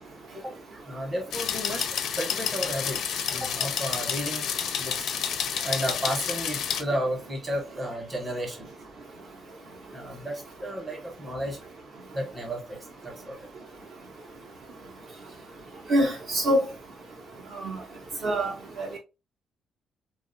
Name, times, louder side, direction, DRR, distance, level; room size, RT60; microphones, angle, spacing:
voice 1, 0.3-5.1 5.5-8.7 9.9-11.6 12.1-13.5, equal, 20° right, 0.9 m, -33 dB
sound 1, 1.3-6.8, left 8 dB, 70° left, 0.5 m, -30 dB
voice 2, 15.9-16.6 17.5-17.8 18.2-18.5 18.8-19.0, equal, 50° right, 0.8 m, -24 dB
3.5 x 2.3 x 2.6 m
cardioid pair, 175°, 0 cm